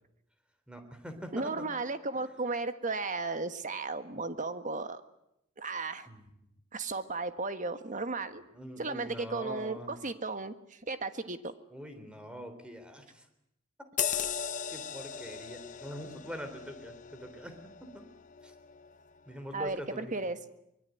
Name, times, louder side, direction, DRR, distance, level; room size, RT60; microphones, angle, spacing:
voice 1, 0.7-1.7 2.1-2.2 4.1-4.2 6.1-6.5 8.5-10.0 11.7-13.3 14.7-18.0 18.4-18.5 19.3-20.1, equal, 5° right, 6 dB, 3.6 m, -44 dB
voice 2, 1.3-5.0 5.6-6.1 6.7-8.4 8.8-10.5 10.9-11.4 19.5-20.4, right 3 dB, 35° right, 10 dB, 1.5 m, -35 dB
sound 1, 14.0-18.9 19.4-19.5, left 8 dB, 40° left, 0.9 m, -38 dB
24.5 x 22.0 x 9.3 m, 0.82 s
head